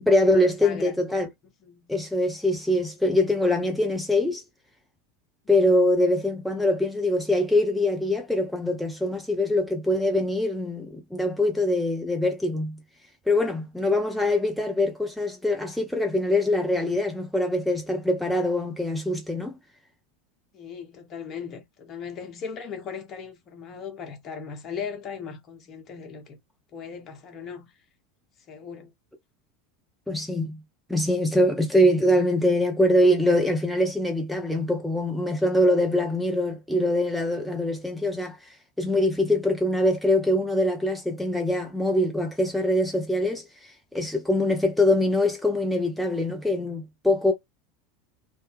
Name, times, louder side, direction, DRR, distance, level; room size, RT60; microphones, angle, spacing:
voice 1, 0.0-1.3 1.9-4.4 5.5-12.8 13.3-19.6 30.1-30.6 30.9-47.3, left 1 dB, ahead, 0.5 m, -23 dB
voice 2, 0.6-0.9 1.4-1.9 20.5-26.4 26.7-27.7 28.5-28.9, left 6 dB, 35° left, 0.9 m, -38 dB
2.8 x 2.1 x 3.4 m
figure-of-eight pair, 80°, 0 cm